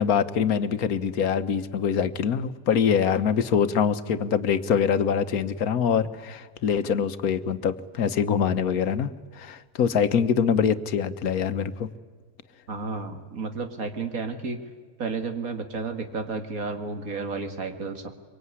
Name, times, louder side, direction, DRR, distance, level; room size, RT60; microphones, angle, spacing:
voice 1, 0.0-11.9, left 7 dB, 80° left, 12 dB, 1.5 m, -24 dB
voice 2, 12.7-14.6 15.0-18.1, right 4 dB, 70° right, 6 dB, 2.5 m, -32 dB
24.0 x 23.5 x 9.7 m, 1.5 s
omnidirectional pair, 1.5 m